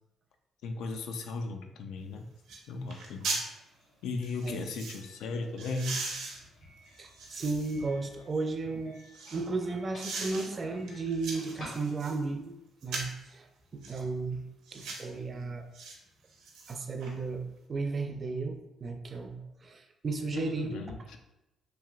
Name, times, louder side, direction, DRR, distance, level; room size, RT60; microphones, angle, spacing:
voice 1, 0.6-2.3 2.7-3.3 4.0-6.1 20.3-21.2, left 3 dB, 85° left, 5 dB, 0.3 m, -36 dB
sound 1, 2.0-2.1 2.5-2.6 2.9-3.5 4.2-5.0 5.6-7.9 8.3-9.5 10.0-10.5 10.9-12.2 12.8-13.2 13.8-14.0 14.7-15.1 15.7-16.0 16.3-17.1 17.5-17.6, right 3 dB, 85° right, 0.6 m, -39 dB
Doorbell, 3.4-12.4, left 1 dB, 60° left, 1.1 m, -54 dB
voice 2, 7.0-9.0 9.3-12.6 12.8-13.5 13.7-14.4 14.7-15.7 16.7-20.8, right 3 dB, 40° right, 6 dB, 0.4 m, -34 dB
3.1 x 2.8 x 2.3 m, 0.93 s
cardioid pair, 90°, 0 cm